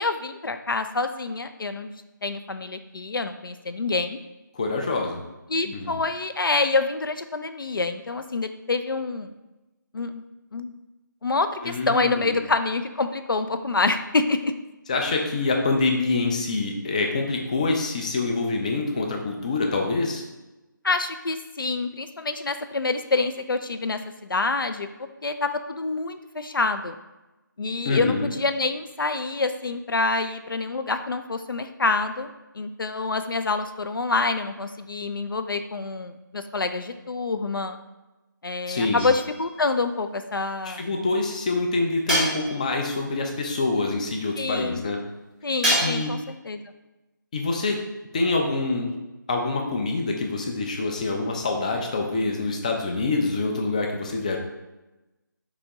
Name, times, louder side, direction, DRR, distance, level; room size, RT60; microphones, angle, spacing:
voice 1, 0.0-1.9 2.2-4.2 5.5-9.3 9.9-10.2 10.5-10.7 11.2-14.5 20.8-24.0 24.3-24.9 25.2-27.0 27.6-32.3 32.6-37.8 38.4-40.8 44.4-44.8 45.4-46.6, left 3 dB, 85° left, 9 dB, 0.4 m, -27 dB
voice 2, 4.5-5.2 5.6-6.0 11.6-12.4 14.9-20.2 27.9-28.3 38.7-39.0 40.6-45.0 45.8-46.1 47.3-47.8 48.1-48.9 49.3-54.4, left 3 dB, 20° left, 2 dB, 0.4 m, -26 dB
sound 1, 39.0-39.6 42.1-42.9 45.6-46.3, right 1 dB, ahead, 0.8 m, -26 dB
4.1 x 2.9 x 3.4 m, 1.0 s
figure-of-eight pair, 160°, 11 cm